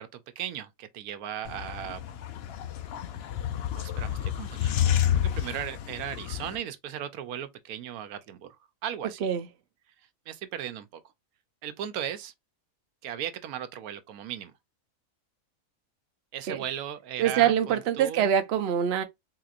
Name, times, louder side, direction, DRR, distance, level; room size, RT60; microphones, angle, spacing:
voice 1, 0.0-2.1 3.8-4.9 5.2-8.5 8.8-9.3 10.3-11.0 11.6-12.3 13.0-14.5 16.3-18.3, right 10 dB, 90° right, 1.1 m, -37 dB
sound 1, 1.4-6.6, left 10 dB, 65° left, 0.6 m, -29 dB
voice 2, 17.2-19.0, right 9 dB, 55° right, 0.8 m, -24 dB
4.1 x 2.8 x 2.4 m
omnidirectional pair, 1.5 m